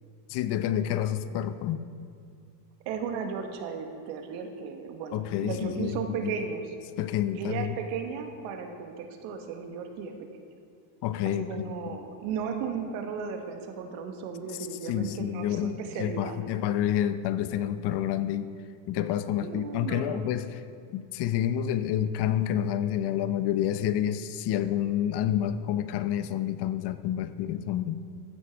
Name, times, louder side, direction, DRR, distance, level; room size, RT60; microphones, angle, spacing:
voice 1, 0.3-1.9 5.1-6.0 6.2-6.3 7.0-7.8 11.0-11.5 14.9-18.5 18.9-20.6 20.9-28.0, left 11 dB, 55° left, 12 dB, 0.8 m, -28 dB
voice 2, 2.8-6.7 7.3-10.1 11.2-16.4 19.4-20.3, right 6 dB, 85° right, 5 dB, 1.5 m, -35 dB
14.5 x 8.9 x 4.6 m, 2.3 s
cardioid pair, 120°, 48 cm